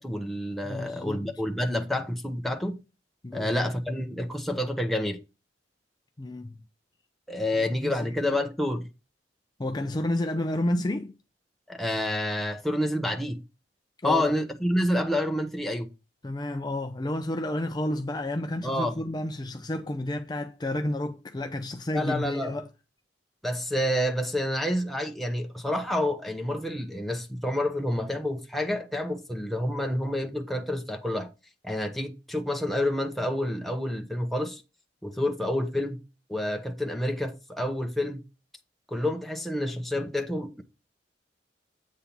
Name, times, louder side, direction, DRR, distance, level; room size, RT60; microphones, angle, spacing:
voice 1, 0.0-2.8 3.3-5.2 7.3-8.9 11.7-13.4 14.0-15.9 18.6-19.0 21.9-22.6 23.4-31.3 31.6-34.6 35.0-36.0 36.3-38.2 38.9-40.6, left 1 dB, ahead, 0.9 m, -28 dB
voice 2, 0.6-1.4 3.2-3.7 6.2-6.6 7.8-8.3 9.6-11.2 14.0-14.4 16.2-22.7, left 1 dB, 25° left, 0.5 m, -31 dB
8.4 x 3.6 x 5.8 m
head